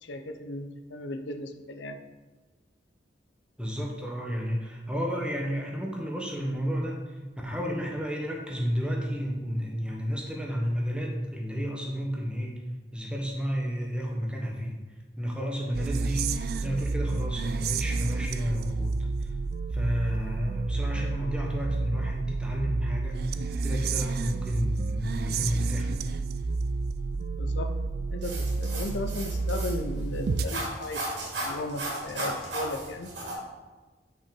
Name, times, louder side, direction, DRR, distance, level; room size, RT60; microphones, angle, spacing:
voice 1, 0.0-2.0 27.2-27.7 28.1-31.0 31.5-33.1, left 2 dB, 85° left, 7 dB, 0.6 m, -36 dB
voice 2, 3.6-12.6 12.9-14.8 15.2-18.9 19.2-19.3 19.7-26.0, equal, 5° right, -1 dB, 1.1 m, -31 dB
sound 1, 15.7-30.5, right 3 dB, 60° right, 0.4 m, -30 dB
sound 2, 28.2-33.3, right 1 dB, 75° right, 2.4 m, -35 dB
5.9 x 5.6 x 5.2 m, 1.3 s
head